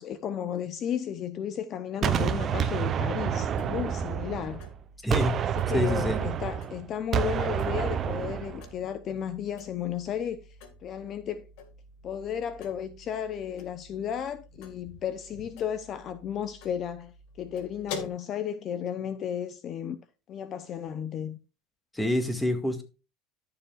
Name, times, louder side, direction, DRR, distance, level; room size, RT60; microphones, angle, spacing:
voice 1, 0.0-4.6 5.4-10.4 10.8-11.4 12.0-20.0 20.3-21.4, left 9 dB, 45° left, 0.8 m, -34 dB
Gunshot gunfire, 2.0-4.7 5.1-8.7, right 8 dB, 40° right, 0.9 m, -28 dB
sound 1, 2.6-18.1, left 4 dB, 70° left, 2.0 m, -48 dB
voice 2, 5.7-6.2 21.9-22.8, left 1 dB, 10° left, 2.0 m, -26 dB
13.0 x 7.0 x 2.5 m
supercardioid pair, 115°, 0 cm